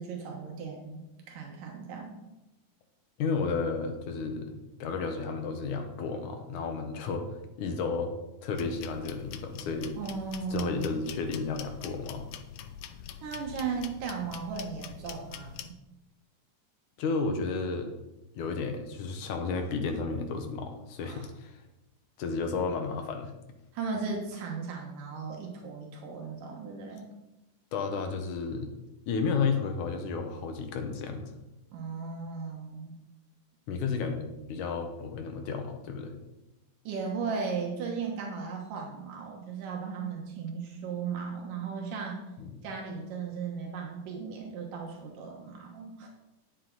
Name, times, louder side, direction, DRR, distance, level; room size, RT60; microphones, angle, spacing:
voice 1, 0.0-2.2 10.0-10.8 13.2-15.8 21.0-21.3 23.7-27.1 31.7-33.0 36.8-42.2 42.6-46.1, right 5 dB, 80° right, 0 dB, 2.8 m, -36 dB
voice 2, 3.2-7.3 7.6-8.1 8.4-10.0 10.5-12.3 17.0-17.9 18.4-21.6 22.2-23.3 27.7-28.7 29.1-31.3 33.7-36.1 42.4-42.6, left 4 dB, 70° left, 5 dB, 2.4 m, -32 dB
sound 1, 8.6-15.7, left 9 dB, 90° left, 2.3 m, -44 dB
10.5 x 9.3 x 4.0 m, 0.98 s
omnidirectional pair, 3.8 m